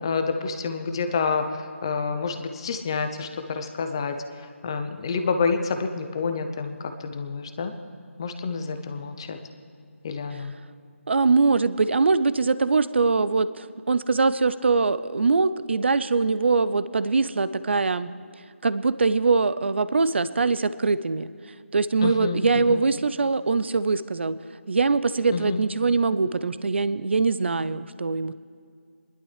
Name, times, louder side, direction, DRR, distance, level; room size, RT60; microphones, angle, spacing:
voice 1, 0.0-4.2 4.6-7.7 8.2-9.4 10.0-10.5 22.0-22.8 25.3-25.6, left 5 dB, 20° left, 8 dB, 0.6 m, -28 dB
voice 2, 11.1-18.1 18.6-21.3 21.7-24.4 24.7-28.3, right 4 dB, 55° right, 15 dB, 0.5 m, -22 dB
29.5 x 11.5 x 3.3 m, 2.2 s
figure-of-eight pair, 170°, 8 cm